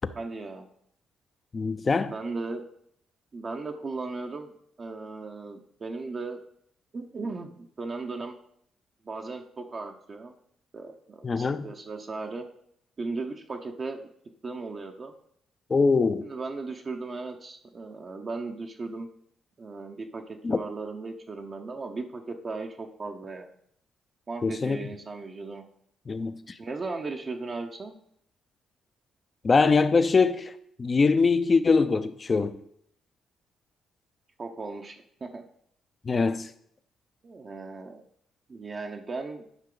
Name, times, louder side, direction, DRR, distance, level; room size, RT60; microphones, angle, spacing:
voice 1, 0.1-0.7 2.1-2.6 3.3-4.5 4.8-6.4 6.9-8.4 9.0-10.3 10.7-12.4 13.0-14.1 14.4-15.1 16.2-19.1 19.6-23.5 24.3-25.6 26.6-28.0 34.4-35.4 37.2-38.0 38.5-39.5, right 3 dB, 40° right, 0.8 m, -36 dB
voice 2, 1.5-2.1 11.2-11.7 15.7-16.3 20.4-20.6 24.4-24.9 26.1-26.3 29.4-30.5 30.8-32.6 36.0-36.5, left 4 dB, 35° left, 0.6 m, -23 dB
11.0 x 5.6 x 3.9 m
cardioid pair, 90°, 0 cm